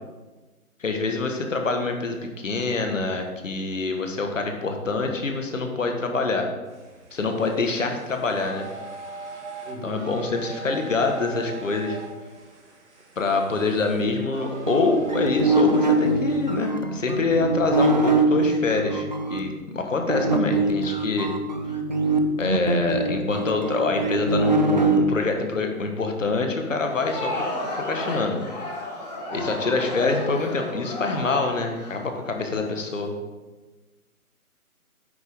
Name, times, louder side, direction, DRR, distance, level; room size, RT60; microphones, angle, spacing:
voice 1, 0.8-6.5 7.1-8.7 9.8-12.0 13.2-21.3 22.4-27.4 27.7-28.4 29.3-33.1, left 3 dB, 55° left, 4 dB, 1.7 m, -25 dB
sound 1, 6.6-16.7, right 4 dB, 50° right, 2.0 m, -41 dB
voice 2, 9.6-10.1 29.3-30.0, right 1 dB, 70° right, 2 dB, 2.1 m, -38 dB
sound 2, 14.7-19.4 20.1-25.0, right 3 dB, 30° right, 0.5 m, -23 dB
Crowd, 26.8-32.7, left 1 dB, 30° left, 2.0 m, -33 dB
10.0 x 8.0 x 3.7 m, 1.2 s
figure-of-eight pair, 150°, 44 cm